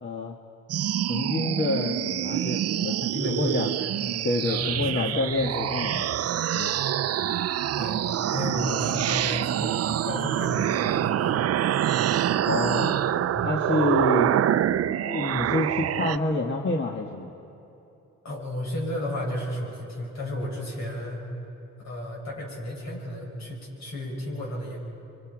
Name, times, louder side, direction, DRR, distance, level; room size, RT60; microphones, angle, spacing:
voice 1, 0.0-0.4 1.1-3.0 3.2-3.7 4.2-6.1 6.5-6.8 12.4-14.4 14.8-17.3, left 2 dB, 35° left, 1 dB, 1.6 m, -28 dB
sound 1, 0.7-16.2, right 11 dB, 55° right, 0.5 m, -26 dB
voice 2, 3.0-4.0 4.4-5.8 7.8-11.5 13.1-13.6 18.2-21.3 21.8-24.8, left 1 dB, 65° left, -2 dB, 7.3 m, -33 dB
28.0 x 24.5 x 5.0 m, 2.9 s
cardioid pair, 90°, 30 cm